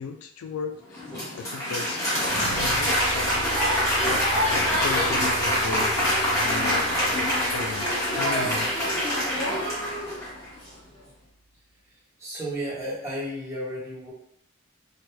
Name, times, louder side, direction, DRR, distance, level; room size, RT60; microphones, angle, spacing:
voice 1, 0.0-2.1 2.3-6.0 6.3-8.7, left 5 dB, 80° left, 5 dB, 0.3 m, -36 dB
Applause, 0.9-10.5, equal, 15° left, 1.0 m, -25 dB
sound 1, 2.2-11.2, right 2 dB, 40° right, 0.3 m, -41 dB
voice 2, 12.2-14.1, equal, 15° right, -8 dB, 1.0 m, -33 dB
3.3 x 2.2 x 3.0 m, 0.74 s
head